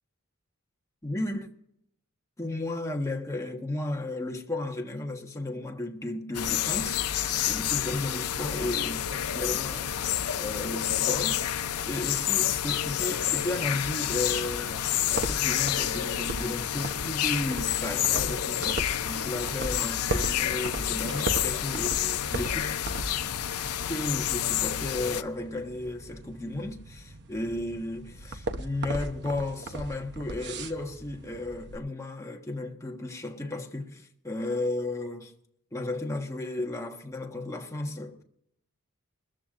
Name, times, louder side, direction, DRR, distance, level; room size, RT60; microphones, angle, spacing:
voice 1, 1.0-1.5 2.4-10.0 10.4-11.4 11.8-22.7 23.8-35.3 35.7-38.2, left 2 dB, 15° left, 1.4 m, -34 dB
sound 1, 6.3-25.2, left 11 dB, 85° left, 0.7 m, -29 dB
sound 2, 14.1-31.8, right 2 dB, 50° right, 0.9 m, -38 dB
22.0 x 14.0 x 2.5 m
head